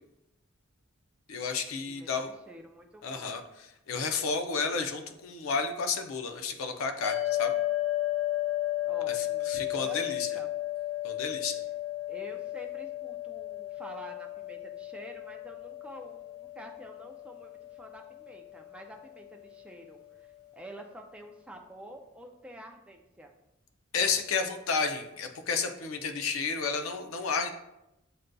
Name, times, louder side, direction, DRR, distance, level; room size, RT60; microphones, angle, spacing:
voice 1, 1.3-2.3 3.0-3.4 3.9-7.6 9.1-10.3 11.0-11.6 23.9-27.5, left 5 dB, 75° left, 6 dB, 0.5 m, -31 dB
voice 2, 2.5-3.4 8.8-10.5 12.1-23.3, right 1 dB, 5° right, 1 dB, 0.3 m, -48 dB
sound 1, 7.0-19.5, left 15 dB, 40° left, 1.5 m, -34 dB
7.6 x 2.5 x 2.2 m, 0.90 s
head